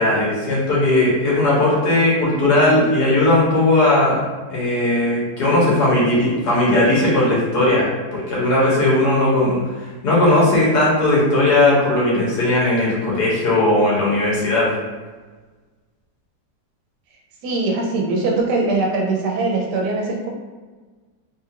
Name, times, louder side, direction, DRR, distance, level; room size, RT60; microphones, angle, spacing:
voice 1, 0.0-9.6 10.0-14.7, left 1 dB, 75° left, -6 dB, 1.7 m, -17 dB
voice 2, 17.4-20.3, right 3 dB, 80° right, -1 dB, 1.2 m, -21 dB
3.5 x 2.4 x 2.8 m, 1.3 s
omnidirectional pair, 1.7 m